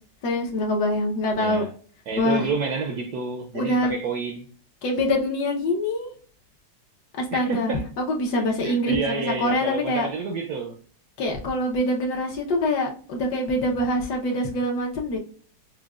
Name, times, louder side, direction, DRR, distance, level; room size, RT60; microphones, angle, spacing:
voice 1, 0.2-1.6 2.2-2.4 3.5-4.0 4.8-6.1 7.2-10.1 11.2-15.2, left 1 dB, 65° left, 1.3 m, -24 dB
voice 2, 1.4-1.7 2.1-4.5 7.3-7.9 8.3-10.8, right 4 dB, 75° right, 0.9 m, -29 dB
6.0 x 2.2 x 2.3 m
omnidirectional pair, 2.1 m